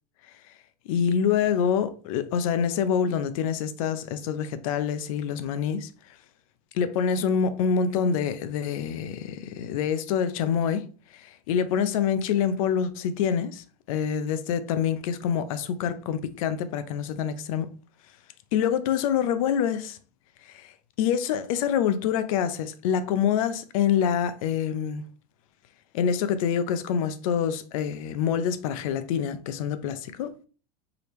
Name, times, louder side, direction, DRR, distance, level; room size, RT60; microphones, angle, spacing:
voice 1, 0.9-5.9 6.7-10.9 11.1-17.7 18.5-20.0 20.5-20.7 21.0-25.0 25.9-30.3, left 8 dB, 60° left, 0.6 m, -26 dB
4.8 x 3.3 x 3.1 m
supercardioid pair, 155°, 20 cm